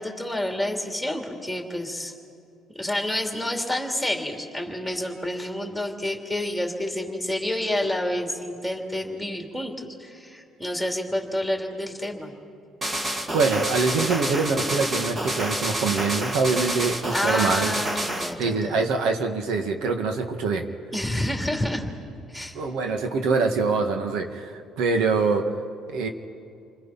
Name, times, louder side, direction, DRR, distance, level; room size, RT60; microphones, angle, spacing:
voice 1, 0.0-2.1 2.8-12.3 17.1-18.8 20.9-21.9 22.3-22.6, left 1 dB, ahead, 1 dB, 2.9 m, -29 dB
sound 1, 12.8-18.3, right 1 dB, 25° right, 2.2 m, -28 dB
voice 2, 13.3-17.8 18.4-20.7 22.5-25.6 25.9-26.1, right 4 dB, 80° right, 5 dB, 1.9 m, -24 dB
30.0 x 25.0 x 5.9 m, 2.5 s
cardioid pair, 140°, 0 cm